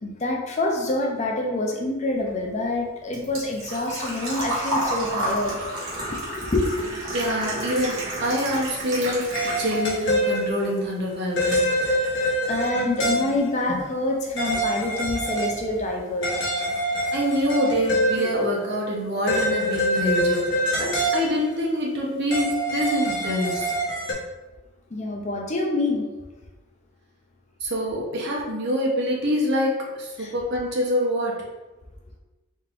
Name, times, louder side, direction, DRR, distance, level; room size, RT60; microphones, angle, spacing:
voice 1, 0.0-5.6 6.0-7.0 12.2-16.3 24.9-26.1 30.2-30.3, left 2 dB, 35° left, 1 dB, 0.5 m, -26 dB
Engine / Trickle dribble / Fill (with liquid), 2.2-10.1 10.4-11.4 11.7-11.8 13.7-13.8 14.0-14.3 14.7-14.8 15.0-15.1, right 1 dB, 75° right, 1.5 m, -31 dB
voice 2, 7.1-11.7 13.7-13.8 17.1-23.7 27.6-31.4, equal, 55° right, -2 dB, 1.0 m, -25 dB
sound 1, 9.3-10.8 11.4-13.6 14.4-15.6 15.9-16.0 16.2-18.6 19.3-21.6 22.3-24.1, equal, 60° left, 1.1 m, -25 dB
4.2 x 3.6 x 2.5 m, 1.1 s
head